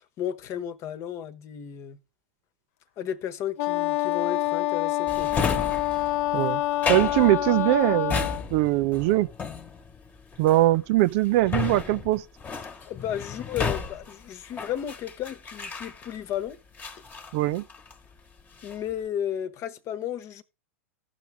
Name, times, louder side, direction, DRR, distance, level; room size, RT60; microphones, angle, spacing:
voice 1, 0.2-2.0 3.0-5.3 12.9-16.6 18.6-20.4, left 10 dB, 40° left, 1.1 m, -33 dB
Wind instrument woodwind instrument, 3.6-8.5, left 16 dB, 65° left, 0.6 m, -27 dB
Drawer open or close, 5.1-16.3 16.8-18.1 18.4-18.9, left 5 dB, 20° left, 1.3 m, -33 dB
voice 2, 6.9-9.3 10.4-12.2 17.3-17.6, right 16 dB, 55° right, 0.4 m, -22 dB
16.0 x 5.9 x 3.5 m
hypercardioid pair, 115°, 8 cm